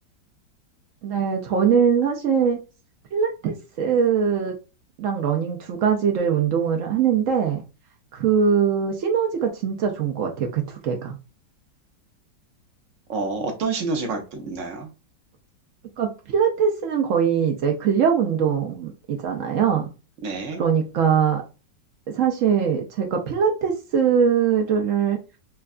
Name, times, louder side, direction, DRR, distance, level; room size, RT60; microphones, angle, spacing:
voice 1, 1.0-2.6 3.1-4.6 5.0-7.6 8.1-11.2 16.0-19.9 20.6-21.4 22.1-25.2, right 7 dB, 85° right, 0.6 m, -22 dB
voice 2, 13.1-14.9 20.2-20.6, right 3 dB, 60° right, 0.9 m, -28 dB
4.4 x 2.2 x 2.3 m
omnidirectional pair, 2.0 m